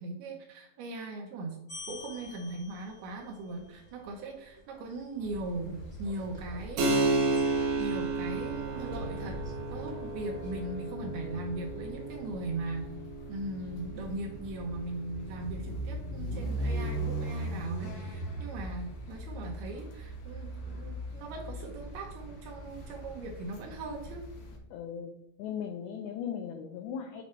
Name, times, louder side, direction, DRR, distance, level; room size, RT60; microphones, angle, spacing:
voice 1, 0.0-1.6 1.9-9.4 9.7-12.9 13.3-24.3, right 2 dB, 75° right, 1 dB, 2.4 m, -39 dB
sound 1, 1.7-10.5, left 1 dB, 30° left, 0.6 m, -48 dB
sound 2, 5.2-24.6, right 1 dB, 65° left, 2.9 m, -40 dB
Keyboard (musical), 6.8-17.0, right 3 dB, 60° right, 2.4 m, -33 dB
voice 2, 24.7-25.1 25.4-27.2, left 8 dB, 85° left, 5 dB, 2.1 m, -37 dB
8.5 x 4.6 x 4.3 m, 0.87 s
omnidirectional pair, 5.2 m